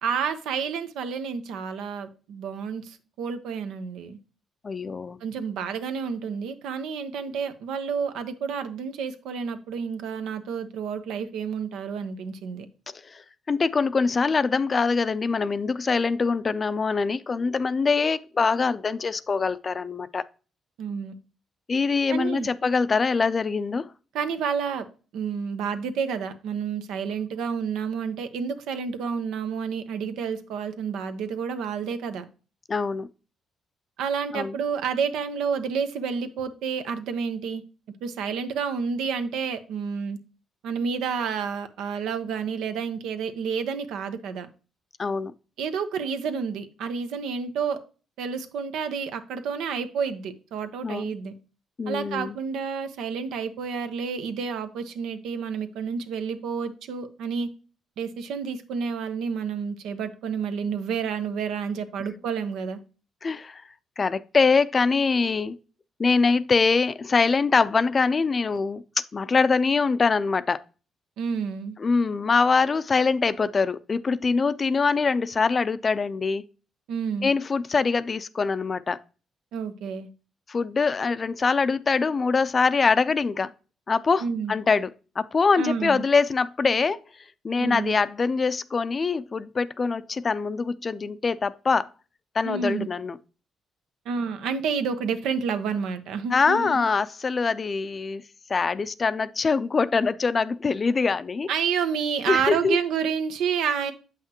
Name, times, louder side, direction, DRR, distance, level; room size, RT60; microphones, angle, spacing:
voice 1, 0.0-4.2 5.2-12.7 20.8-21.1 22.1-22.5 24.1-24.8 25.1-32.2 34.0-37.6 38.0-40.2 40.6-44.5 45.6-47.8 48.2-51.3 51.9-57.5 58.0-62.8 71.2-71.8 76.9-77.3 79.5-80.1 84.2-84.5 85.6-86.0 87.6-88.0 92.4-92.9 94.0-96.8 101.5-103.9, right 6 dB, 85° right, 0.8 m, -29 dB
voice 2, 4.6-5.2 13.0-20.3 21.7-23.9 32.7-33.1 34.3-34.6 45.0-45.3 50.8-51.1 51.8-52.4 63.2-63.6 64.0-65.6 66.0-68.8 69.1-70.6 71.8-76.4 77.2-79.0 80.5-83.5 83.9-84.9 85.2-87.0 87.4-91.9 92.3-93.2 96.3-98.2 98.5-101.5 102.3-102.8, left 4 dB, 35° left, 0.4 m, -23 dB
7.6 x 5.8 x 2.9 m
cardioid pair, 90°, 0 cm